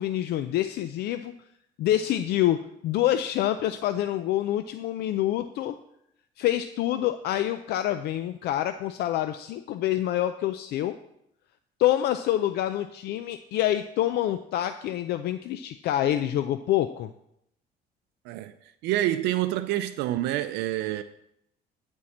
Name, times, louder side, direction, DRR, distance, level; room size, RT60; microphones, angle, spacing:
voice 1, 0.0-1.3 1.8-5.8 6.4-11.0 11.8-17.1, left 13 dB, 70° left, 0.5 m, -26 dB
voice 2, 18.8-21.0, right 14 dB, 90° right, 0.5 m, -27 dB
11.5 x 4.6 x 7.2 m
cardioid pair, 110°, 17 cm